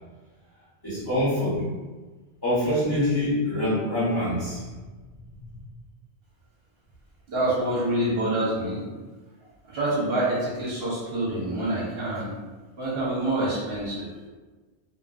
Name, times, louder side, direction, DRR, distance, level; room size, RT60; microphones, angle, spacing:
voice 1, 0.8-1.7 2.4-4.6 5.3-5.6, left 1 dB, 20° left, -11 dB, 0.9 m, -25 dB
voice 2, 7.3-8.8 9.7-12.3 12.8-14.1, right 1 dB, 60° right, -7 dB, 1.0 m, -26 dB
2.7 x 2.4 x 2.4 m, 1.3 s
omnidirectional pair, 1.2 m